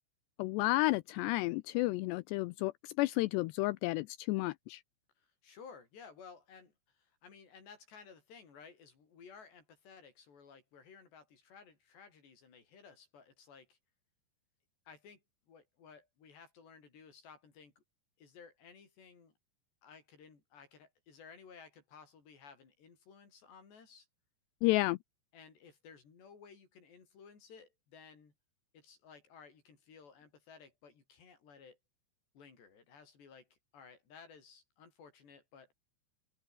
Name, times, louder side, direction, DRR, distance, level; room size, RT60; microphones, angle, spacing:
voice 1, 0.4-4.8 24.6-25.0, left 20 dB, 90° left, 2.4 m, -31 dB
voice 2, 5.2-13.8 14.9-17.8 18.2-19.3 19.8-24.1 25.3-28.3 28.7-31.8 32.3-35.7, left 6 dB, 60° left, 7.5 m, -56 dB
omnidirectional pair, 5.4 m